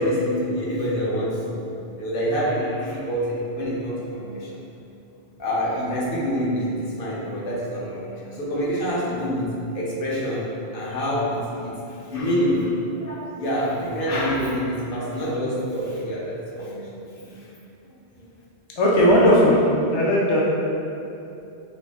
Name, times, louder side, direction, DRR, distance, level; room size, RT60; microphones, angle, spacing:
voice 1, 0.0-1.6 2.0-4.5 5.4-17.5 18.2-18.3, equal, 60° left, -6 dB, 0.8 m, -26 dB
voice 2, 18.8-19.6 19.9-20.5, equal, 40° left, -5 dB, 0.4 m, -17 dB
4.4 x 2.5 x 2.3 m, 2.8 s
omnidirectional pair, 1.1 m